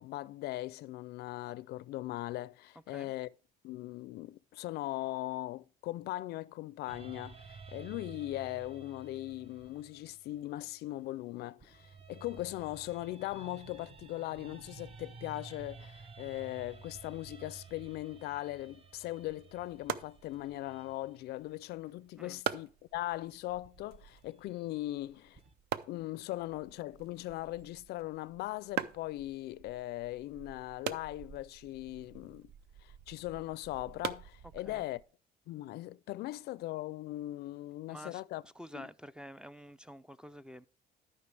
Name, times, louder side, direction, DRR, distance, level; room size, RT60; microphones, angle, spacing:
voice 1, 0.0-3.3 3.6-25.4 25.9-32.5 32.8-35.0 35.5-38.4 38.7-38.9, left 16 dB, 75° left, 0.4 m, -39 dB
sound 1, 6.9-11.1 11.6-21.6 23.6-25.5, right 5 dB, 35° right, 0.9 m, -53 dB
sound 2, 19.2-35.0, right 9 dB, 70° right, 0.6 m, -44 dB
voice 2, 37.9-40.7, equal, 5° right, 0.3 m, -49 dB
12.5 x 5.6 x 3.3 m
cardioid pair, 110°, 17 cm